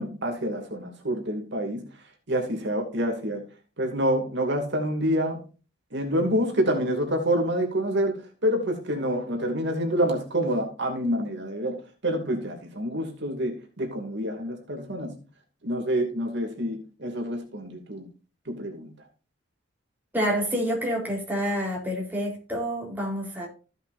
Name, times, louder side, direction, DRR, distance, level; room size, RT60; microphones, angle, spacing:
voice 1, 0.0-1.8 2.3-3.4 3.8-5.4 5.9-15.1 15.6-18.1 18.5-18.9, equal, 60° right, 2.6 m, -27 dB
voice 2, 20.1-23.5, equal, 10° right, 3.9 m, -28 dB
15.0 x 8.0 x 2.6 m
head